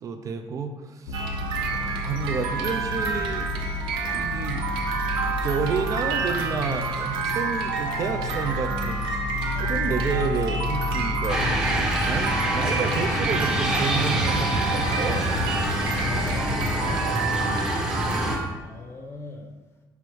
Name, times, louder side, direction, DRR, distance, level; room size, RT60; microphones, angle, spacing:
voice 1, 0.0-1.3 2.0-3.6 4.1-4.7 5.3-9.1 9.6-15.3, right 5 dB, 40° right, 6 dB, 0.3 m, -30 dB
sound 1, 1.1-17.0, left 3 dB, 70° left, 0.6 m, -32 dB
sound 2, 1.1-18.5, right 4 dB, 85° right, 0.7 m, -29 dB
sound 3, 11.3-18.4, right 1 dB, 10° right, 0.6 m, -26 dB
voice 2, 16.0-17.2 18.6-19.5, left 2 dB, 30° left, 1 dB, 0.7 m, -37 dB
5.7 x 2.0 x 4.6 m, 1.3 s
cardioid pair, 135°, 8 cm